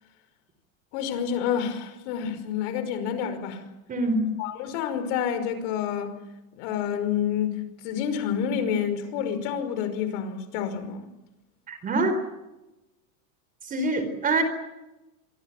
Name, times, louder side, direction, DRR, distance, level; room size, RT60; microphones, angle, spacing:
voice 1, 0.9-3.6 4.4-6.1 6.5-11.1, left 8 dB, 55° left, 5.5 m, -28 dB
voice 2, 3.9-4.2 11.7-12.2 13.7-14.4, right 2 dB, 20° right, 4.4 m, -25 dB
27.5 x 23.5 x 7.4 m
supercardioid pair, 160°, 42 cm